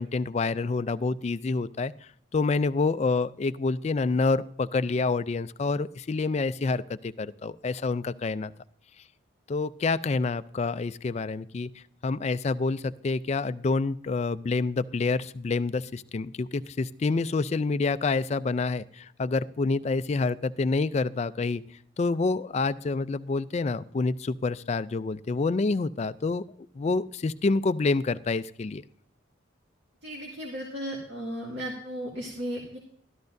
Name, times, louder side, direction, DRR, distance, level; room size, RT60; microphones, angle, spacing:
voice 1, 0.0-8.5 9.5-21.6 22.0-26.4 26.8-28.8, left 3 dB, 35° left, 14 dB, 0.3 m, -27 dB
voice 2, 30.0-32.8, equal, 60° right, -2 dB, 2.1 m, -35 dB
13.0 x 13.0 x 2.6 m, 0.68 s
head